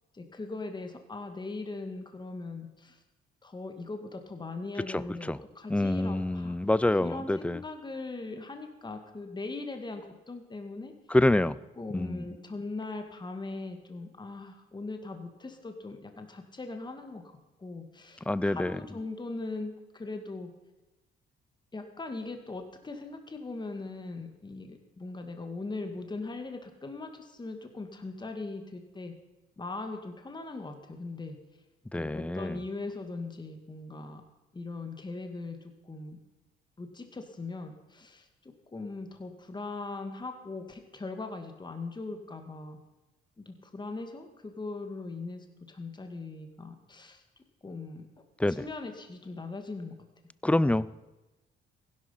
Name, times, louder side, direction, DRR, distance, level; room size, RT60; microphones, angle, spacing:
voice 1, 0.1-3.0 3.4-6.6 7.0-10.9 11.8-20.5 21.7-29.1 29.6-31.4 31.9-34.2 34.5-36.2 36.8-42.8 43.4-47.2 47.6-48.1 48.5-49.9, left 3 dB, 20° left, 6 dB, 2.0 m, -40 dB
voice 2, 5.7-7.6 11.1-11.5 11.9-12.2 18.3-18.7 31.9-32.6 48.4-48.6 50.4-50.9, left 1 dB, 5° left, 19 dB, 0.5 m, -26 dB
16.0 x 11.5 x 5.7 m, 1.1 s
cardioid pair, 90°, 20 cm